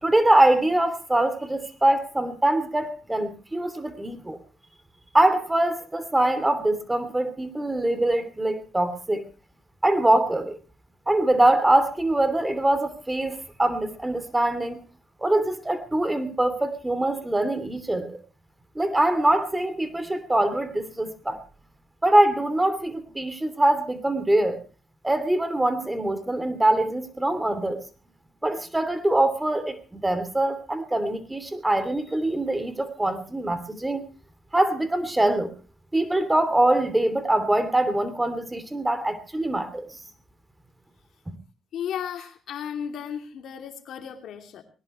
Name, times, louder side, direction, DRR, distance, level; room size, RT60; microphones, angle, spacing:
voice 1, 0.0-4.4 5.1-9.2 9.8-10.6 11.1-14.8 15.2-18.2 18.7-21.4 22.0-24.6 25.0-27.8 28.4-34.0 34.5-35.5 35.9-40.0 41.3-41.4, right 1 dB, 15° right, 3.0 m, -23 dB
voice 2, 41.7-44.6, left 8 dB, 75° left, 2.9 m, -34 dB
20.5 x 19.0 x 3.2 m
cardioid pair, 90°, 0 cm